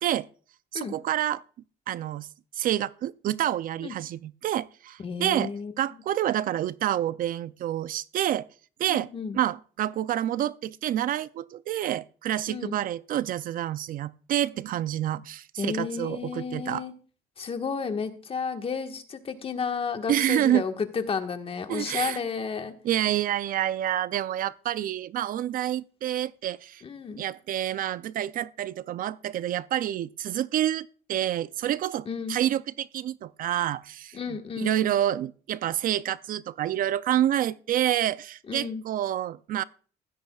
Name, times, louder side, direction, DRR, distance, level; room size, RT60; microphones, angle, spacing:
voice 1, 0.7-1.4 1.9-2.3 2.5-5.5 5.8-8.5 8.8-16.8 20.1-20.6 21.7-22.2 22.8-26.8 27.2-34.2 34.6-39.6, right 12 dB, 55° right, 0.4 m, -28 dB
voice 2, 5.0-5.7 8.9-9.4 12.5-12.8 15.6-16.9 17.4-22.7 26.8-27.2 32.0-32.4 34.1-34.9 38.5-38.8, left 5 dB, 35° left, 1.5 m, -32 dB
16.0 x 12.5 x 2.4 m
cardioid pair, 110°, 17 cm